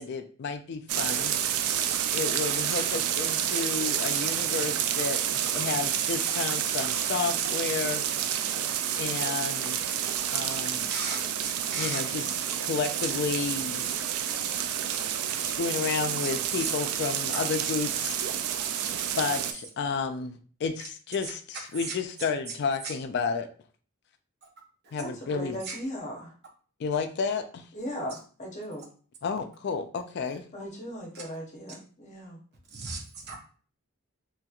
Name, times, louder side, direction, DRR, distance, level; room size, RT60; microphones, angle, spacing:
voice 1, 0.0-1.4 2.1-5.2 5.5-8.4 9.0-10.0 10.3-10.9 11.8-12.3 12.6-13.9 15.4-18.2 19.2-23.5 24.9-25.6 26.8-27.7 29.2-30.4, left 5 dB, 50° left, 8 dB, 0.3 m, -31 dB
sound 1, 0.9-19.5, right 9 dB, 80° right, 0.3 m, -29 dB
voice 2, 1.7-2.0 2.4-2.5 2.7-2.8 10.9-11.2 11.7-12.0 13.0-13.1 16.2-16.7 17.3-17.8 21.8-21.9 25.7-25.8 32.7-33.4, right 4 dB, 50° right, 0 dB, 0.8 m, -35 dB
voice 3, 25.0-26.3 27.7-28.9 30.5-32.4, equal, 35° left, -1 dB, 0.7 m, -37 dB
3.1 x 2.9 x 2.3 m, 0.42 s
head